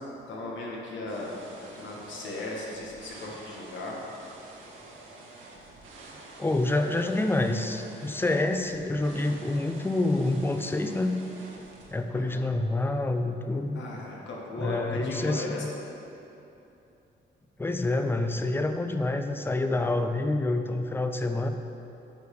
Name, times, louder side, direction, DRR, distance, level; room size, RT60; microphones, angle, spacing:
voice 1, 0.0-4.0 12.1-12.5 13.7-15.7, left 2 dB, 70° left, -3 dB, 1.6 m, -37 dB
sound 1, 1.1-11.9, right 2 dB, 75° right, 1.5 m, -48 dB
voice 2, 6.4-11.2 11.9-13.8 14.6-15.7 17.6-21.5, left 2 dB, 10° left, 7 dB, 0.5 m, -27 dB
9.3 x 3.4 x 6.6 m, 2.9 s
cardioid pair, 90°, 20 cm